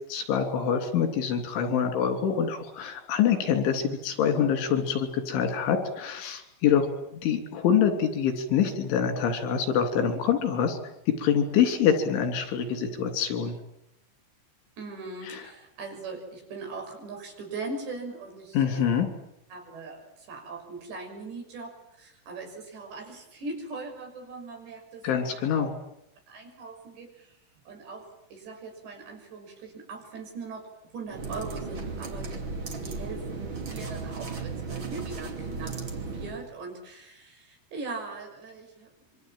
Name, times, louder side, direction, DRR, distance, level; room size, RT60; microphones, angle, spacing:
voice 1, 0.1-6.9 7.2-10.8 11.2-13.6 15.2-15.4 18.6-19.1 25.0-25.7, left 7 dB, 85° left, 7 dB, 5.6 m, -25 dB
voice 2, 14.8-19.1 19.5-25.5 26.3-27.4 27.7-35.8 36.0-39.2, right 3 dB, 65° right, 2 dB, 8.1 m, -40 dB
sound 1, 31.1-36.4, right 4 dB, 35° right, 2.7 m, -35 dB
26.0 x 24.5 x 9.0 m, 0.82 s
omnidirectional pair, 5.3 m